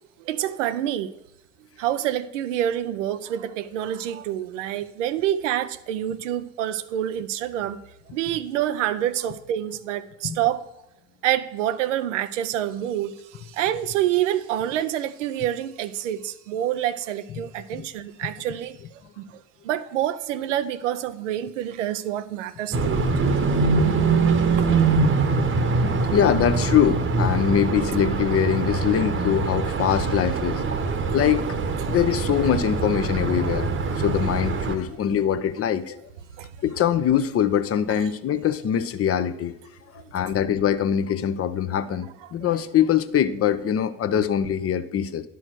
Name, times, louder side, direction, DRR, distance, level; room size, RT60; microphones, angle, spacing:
voice 1, 0.2-1.1 1.8-7.8 8.1-10.6 11.2-18.8 19.2-19.4 19.6-23.4 24.6-25.3 30.8-31.2 33.4-33.7 36.4-36.5 37.9-38.1 40.2-40.4 42.2-42.3, right 11 dB, 80° right, 0.6 m, -27 dB
sound 1, 22.7-34.8, right 4 dB, 35° right, 1.0 m, -23 dB
voice 2, 23.1-24.0 25.2-30.8 31.1-31.4 31.9-33.7 34.0-36.0 36.6-39.5 40.1-45.2, left 9 dB, 40° left, 0.7 m, -23 dB
10.5 x 4.6 x 6.1 m
hypercardioid pair, 60°, 37 cm